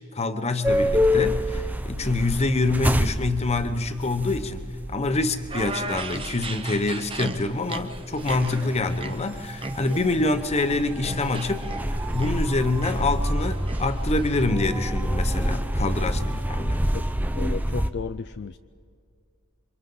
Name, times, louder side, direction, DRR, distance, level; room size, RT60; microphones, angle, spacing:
voice 1, 0.1-11.7 12.1-16.2 16.5-16.8, left 2 dB, 30° left, 9 dB, 0.9 m, -26 dB
sound 1, 0.6-17.9, equal, 5° right, 0.5 m, -28 dB
sound 2, 5.5-14.3, right 2 dB, 25° right, 0.9 m, -37 dB
voice 2, 16.0-17.1 17.3-18.6, left 5 dB, 50° left, 10 dB, 0.4 m, -36 dB
28.0 x 24.5 x 3.9 m, 2.2 s
head